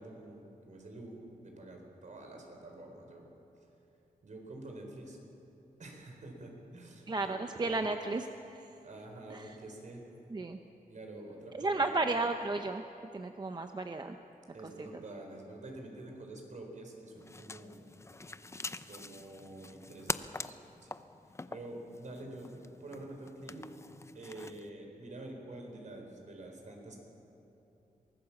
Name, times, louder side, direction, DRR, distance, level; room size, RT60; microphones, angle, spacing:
voice 1, 0.0-3.3 4.2-5.2 5.8-7.9 8.8-10.0 10.9-12.1 14.5-17.8 18.9-20.6 20.8-20.9 21.5-22.5 22.8-23.7 24.1-26.9, right 2 dB, 55° right, 2 dB, 4.3 m, -47 dB
voice 2, 7.1-8.6 9.3-9.6 10.3-10.6 11.5-12.8 13.1-14.2, right 3 dB, 30° right, 6 dB, 0.7 m, -33 dB
sound 1, 17.1-24.7, left 2 dB, 20° left, 0.6 m, -44 dB
23.5 x 18.5 x 7.3 m, 2.9 s
wide cardioid pair, 135°, 15 cm